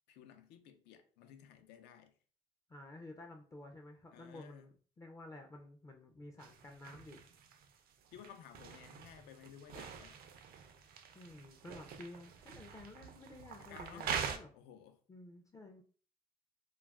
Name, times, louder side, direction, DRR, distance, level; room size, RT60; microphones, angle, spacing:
voice 1, 0.1-2.1 4.1-4.7 8.1-10.2 13.6-14.1 14.5-15.0, left 8 dB, 85° left, 0.5 m, -56 dB
voice 2, 2.7-7.2 11.1-14.5 15.1-15.8, left 2 dB, 20° left, 0.4 m, -52 dB
sound 1, 6.4-14.4, right 7 dB, 60° right, 0.4 m, -45 dB
2.3 x 2.2 x 3.4 m
cardioid pair, 110°, 17 cm